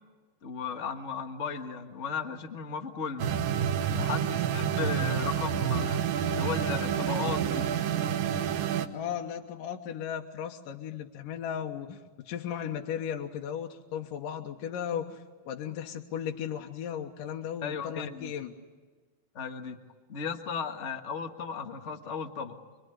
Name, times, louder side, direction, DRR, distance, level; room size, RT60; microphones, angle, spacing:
voice 1, 0.4-3.4 3.9-6.0 6.3-7.7 17.6-18.3 19.3-19.8 20.1-22.6, left 6 dB, 60° left, 5 dB, 0.7 m, -35 dB
sound 1, 3.2-8.9, right 8 dB, 80° right, 2.8 m, -28 dB
voice 2, 8.9-18.5, left 9 dB, 75° left, 2 dB, 2.8 m, -36 dB
25.5 x 23.5 x 9.9 m, 1.3 s
omnidirectional pair, 4.0 m